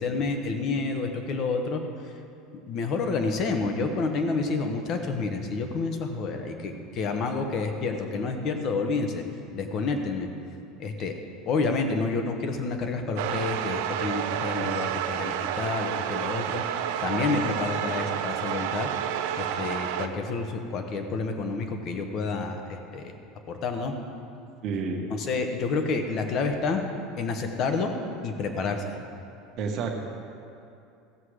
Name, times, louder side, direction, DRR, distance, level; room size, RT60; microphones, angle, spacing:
voice 1, 0.0-2.1 2.7-9.2 9.5-10.3 10.8-11.1 11.5-16.6 17.0-18.9 19.4-23.1 23.5-24.0 25.1-26.8 27.2-27.9 28.2-29.0, left 4 dB, 40° left, 5 dB, 1.1 m, -29 dB
sound 1, 13.2-20.1, right 10 dB, 75° right, 0.6 m, -30 dB
voice 2, 24.6-25.1 29.6-29.9, right 5 dB, 40° right, 1 dB, 1.4 m, -29 dB
15.5 x 7.5 x 4.9 m, 2.6 s
cardioid pair, 160°, 0 cm